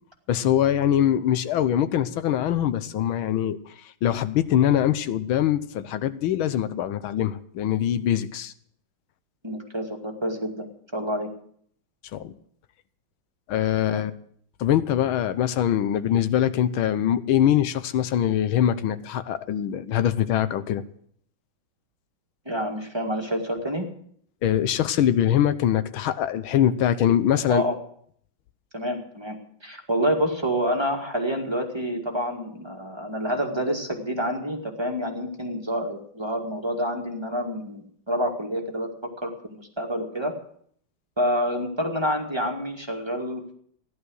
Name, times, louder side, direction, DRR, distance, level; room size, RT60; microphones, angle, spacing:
voice 1, 0.3-8.5 12.1-12.3 13.5-14.1 14.6-20.8 24.4-27.6, left 10 dB, 90° left, 13 dB, 1.7 m, -23 dB
voice 2, 9.4-11.3 13.8-14.0 22.5-23.9 27.5-27.7 28.7-38.9 39.2-40.3 41.2-43.5, equal, 15° right, 2 dB, 1.9 m, -28 dB
15.5 x 11.0 x 6.4 m, 0.64 s
omnidirectional pair, 2.2 m